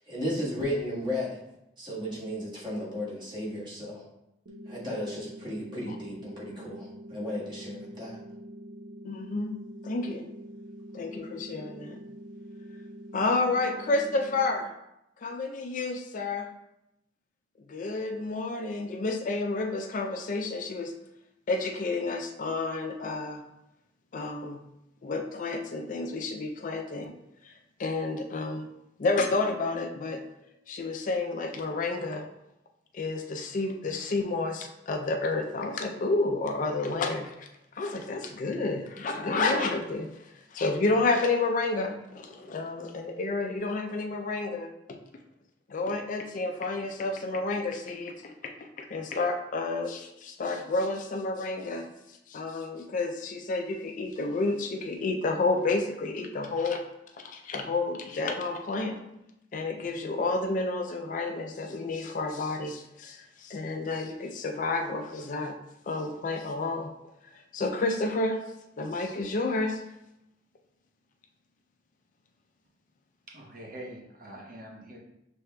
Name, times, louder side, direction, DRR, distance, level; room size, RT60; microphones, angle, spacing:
voice 1, 0.1-1.4 1.8-4.0 4.7-8.2, left 1 dB, 25° right, -7 dB, 1.5 m, -34 dB
sound 1, 4.5-14.5, equal, 90° right, 0.7 m, -45 dB
voice 2, 9.0-10.2 10.9-12.0 13.1-14.7 15.2-16.5 17.7-20.9 21.5-23.4 24.1-24.6 25.0-27.1 27.4-28.7 29.0-30.2 30.7-32.2 32.9-37.5 37.7-45.0 45.7-56.8 57.1-59.2 59.5-65.6 65.9-66.9 67.3-68.4 68.8-69.8, left 3 dB, 45° left, 4 dB, 0.4 m, -30 dB
voice 3, 73.3-75.0, right 1 dB, 50° right, -2 dB, 0.9 m, -44 dB
6.5 x 3.4 x 2.2 m, 0.86 s
head